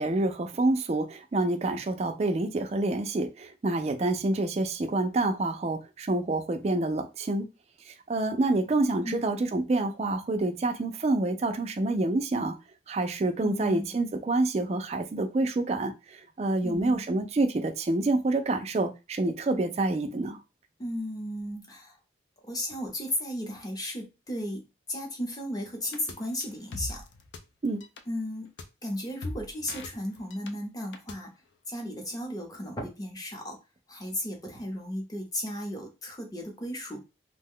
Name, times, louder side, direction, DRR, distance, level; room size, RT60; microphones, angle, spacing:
voice 1, 0.0-7.5 7.9-12.6 12.9-20.4 27.6-27.8, right 2 dB, 35° right, 0.3 m, -27 dB
voice 2, 13.4-13.9 16.6-17.0 20.8-22.0 22.4-24.6 24.9-27.0 28.1-28.5 28.8-31.3 31.7-33.6 33.9-37.0, left 1 dB, 20° left, 0.7 m, -35 dB
sound 1, 25.9-26.1 26.4-27.4 27.6-28.0 28.6-28.7 28.9-30.5 30.8-31.1, left 2 dB, 70° left, 0.5 m, -39 dB
2.5 x 2.1 x 3.6 m
head